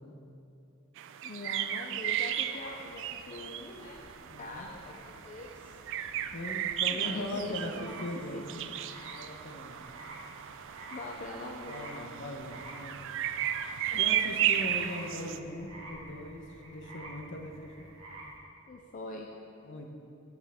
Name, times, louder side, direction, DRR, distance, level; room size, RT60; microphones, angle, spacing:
sound 1, 1.0-15.4, right 10 dB, 60° right, 0.3 m, -35 dB
voice 1, 1.2-5.7 6.9-8.4 10.9-12.1 13.9-14.2 18.7-19.3, left 2 dB, 35° left, 0 dB, 0.5 m, -43 dB
sound 2, 2.5-18.4, right 1 dB, 75° right, 1.5 m, -50 dB
voice 2, 4.3-4.7 6.3-8.7 9.0-9.8 11.7-13.1 13.9-17.9 19.6-19.9, left 1 dB, 60° left, 3 dB, 0.8 m, -40 dB
9.9 x 7.0 x 3.5 m, 2.6 s
head